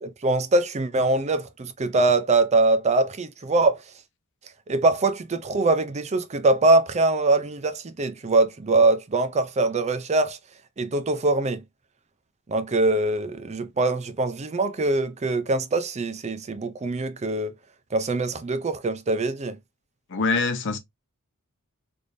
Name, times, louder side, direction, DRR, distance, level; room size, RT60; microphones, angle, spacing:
voice 1, 0.0-3.8 4.7-10.4 10.8-11.6 12.5-17.5 17.9-19.6, right 2 dB, 30° right, 0.5 m, -23 dB
voice 2, 20.1-20.8, left 4 dB, 60° left, 0.7 m, -24 dB
3.4 x 3.4 x 2.6 m
head